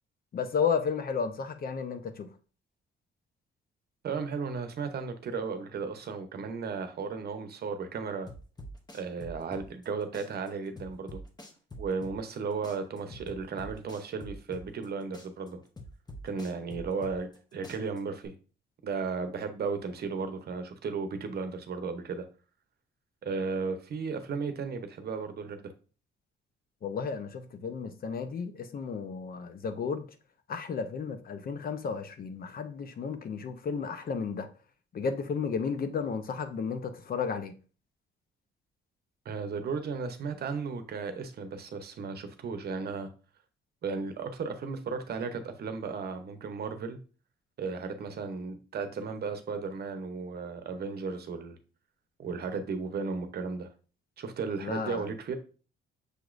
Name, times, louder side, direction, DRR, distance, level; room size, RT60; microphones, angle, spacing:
voice 1, 0.3-2.3 26.8-30.1 30.5-34.5 34.9-37.5 54.6-55.1, left 6 dB, 50° left, 0.6 m, -33 dB
voice 2, 4.0-8.3 8.9-11.2 11.8-15.6 16.2-18.3 18.8-22.2 23.2-25.7 39.2-43.1 43.8-47.0 47.6-51.6 52.2-53.7 54.2-55.4, right 5 dB, 55° right, 0.8 m, -35 dB
sound 1, 8.3-9.9 10.1-12.4 12.6-14.9 15.1-17.4 17.6-18.3, equal, 20° left, 0.8 m, -45 dB
6.4 x 3.0 x 2.5 m
cardioid pair, 90°, 20 cm